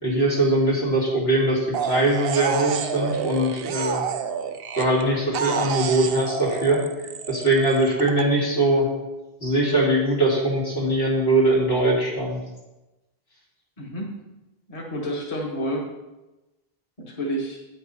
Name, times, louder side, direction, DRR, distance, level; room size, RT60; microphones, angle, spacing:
voice 1, 0.0-4.0 4.8-6.8 7.3-8.8 9.4-12.4, right 1 dB, 75° left, -4 dB, 2.7 m, -21 dB
sound 1, 1.7-5.0 5.3-8.2, right 7 dB, 70° right, 0.8 m, -29 dB
voice 2, 13.8-14.1 14.7-15.8 17.0-17.6, equal, 35° left, -2 dB, 1.4 m, -29 dB
8.5 x 5.9 x 5.4 m, 1.0 s
omnidirectional pair, 1.1 m